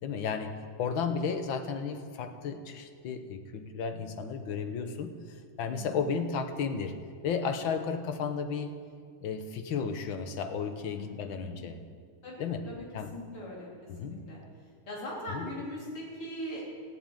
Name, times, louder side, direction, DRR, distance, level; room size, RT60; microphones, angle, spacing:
voice 1, 0.0-7.0 7.2-8.8 9.2-11.8 12.4-12.7 12.9-13.2 13.9-14.2 15.3-15.5, left 6 dB, 70° left, 7 dB, 1.7 m, -33 dB
voice 2, 5.7-6.0 10.8-11.6 12.2-12.8 13.1-13.7 14.0-14.4 14.9-16.6, left 1 dB, 90° left, -4 dB, 4.4 m, -40 dB
15.0 x 8.3 x 9.1 m, 2.1 s
omnidirectional pair, 2.4 m